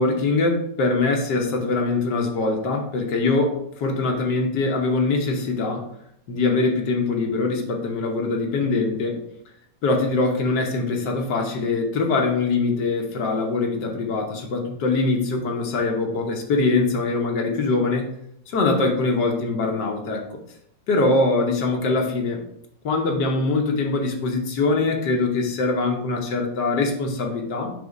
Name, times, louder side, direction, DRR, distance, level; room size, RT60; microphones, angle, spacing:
voice 1, 0.0-5.8 6.3-9.2 9.8-18.1 18.5-20.2 20.9-22.4 22.8-27.7, left 3 dB, 80° left, 2 dB, 1.7 m, -23 dB
5.4 x 3.5 x 5.2 m, 0.75 s
omnidirectional pair, 1.8 m